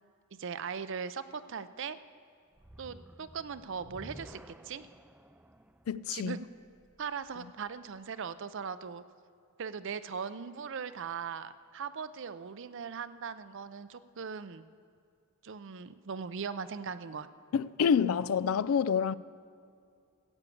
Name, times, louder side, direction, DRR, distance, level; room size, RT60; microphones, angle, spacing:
voice 1, 0.4-2.0 2.8-4.9 6.1-6.5 7.0-9.0 9.6-14.6 15.4-17.3, right 6 dB, 60° right, 0.5 m, -39 dB
sound 1, 2.5-7.8, right 1 dB, 5° right, 0.4 m, -53 dB
voice 2, 5.9-6.4 17.5-19.1, left 7 dB, 85° left, 0.4 m, -27 dB
15.0 x 8.2 x 8.4 m
head